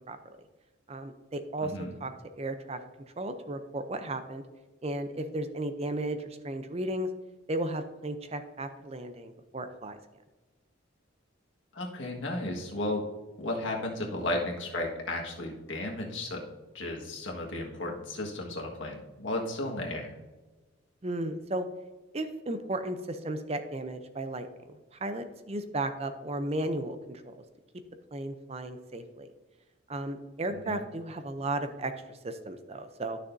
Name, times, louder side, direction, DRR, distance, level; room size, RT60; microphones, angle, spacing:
voice 1, 0.9-1.7 2.0-2.1 2.4-2.8 3.2-4.4 4.8-7.1 7.5-10.0 21.0-21.7 22.1-27.4 28.1-29.3 29.9-33.2, right 1 dB, 30° right, 9 dB, 0.6 m, -34 dB
voice 2, 1.6-1.9 11.7-13.0 13.4-16.4 16.7-20.1 30.7-30.8, left 1 dB, 70° left, 0 dB, 1.6 m, -34 dB
12.0 x 6.6 x 2.7 m, 1.2 s
head